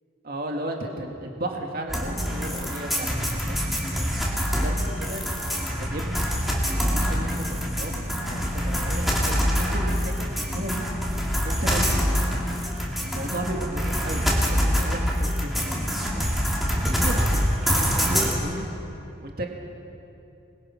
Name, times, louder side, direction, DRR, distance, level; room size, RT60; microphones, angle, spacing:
voice 1, 0.2-3.1 3.4-3.8 4.6-5.3 5.6-6.2 6.8-10.8 11.4-12.2 13.0-16.4 17.0-18.7 19.2-19.5, right 1 dB, 50° right, 1 dB, 2.1 m, -35 dB
sound 1, 1.9-18.3, equal, ahead, 3.1 m, -25 dB
27.0 x 22.0 x 5.8 m, 2.8 s
head